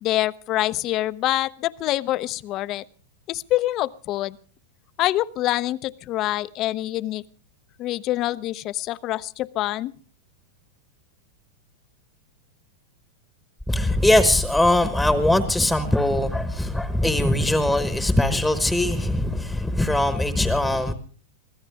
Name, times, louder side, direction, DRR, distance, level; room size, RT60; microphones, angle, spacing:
voice 1, 0.0-2.8 3.3-4.4 5.0-7.2 7.8-9.9, left 15 dB, 35° left, 16 dB, 0.7 m, -25 dB
voice 2, 13.7-20.9, left 1 dB, ahead, 10 dB, 1.2 m, -21 dB
24.0 x 16.0 x 3.5 m, 0.40 s
supercardioid pair, 135°, 0 cm